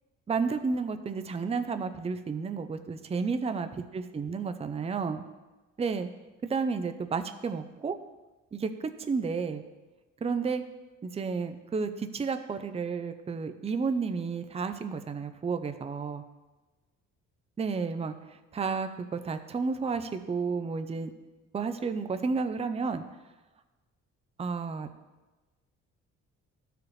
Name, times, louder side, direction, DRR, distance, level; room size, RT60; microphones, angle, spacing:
voice 1, 0.3-5.2 5.8-6.1 6.4-8.0 8.5-9.6 10.2-10.6 11.0-16.2 17.6-18.1 18.5-21.1 21.5-23.0 24.4-24.9, right 5 dB, 20° right, 9 dB, 0.5 m, -31 dB
12.5 x 4.9 x 3.2 m, 1.2 s
cardioid pair, 90°, 30 cm